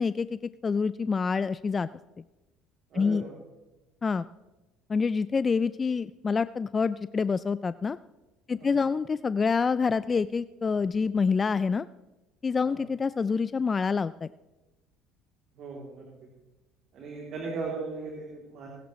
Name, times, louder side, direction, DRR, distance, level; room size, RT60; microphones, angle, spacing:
voice 1, 0.0-1.9 2.9-3.2 4.0-4.3 4.9-8.0 8.5-11.9 12.4-14.3, left 5 dB, 30° left, 15 dB, 0.3 m, -27 dB
voice 2, 2.9-3.3 8.6-8.8 12.7-12.8 15.5-16.3 16.9-18.7, right 4 dB, 60° right, -2 dB, 3.0 m, -38 dB
20.5 x 11.0 x 3.1 m, 1.1 s
hypercardioid pair, 75°, 0 cm